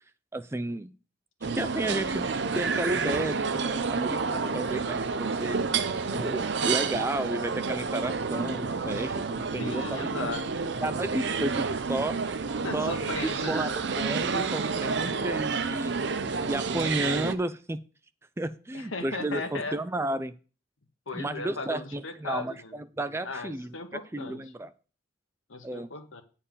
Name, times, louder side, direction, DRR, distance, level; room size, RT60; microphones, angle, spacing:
voice 1, 0.3-0.9 1.6-2.3 2.5-5.6 6.1-10.3 10.6-12.1 12.7-12.9 13.5-15.9 16.5-17.8 18.4-20.3 21.1-23.7 24.1-24.7 25.6-25.9, right 1 dB, 15° right, 13 dB, 0.4 m, -32 dB
sound 1, 1.4-17.3, right 5 dB, 60° right, 0.6 m, -29 dB
voice 2, 9.6-10.6 12.6-13.6 18.7-19.8 21.1-22.7 23.2-24.4 25.5-26.2, left 3 dB, 90° left, 7 dB, 1.3 m, -37 dB
9.0 x 4.4 x 7.0 m, 0.37 s
head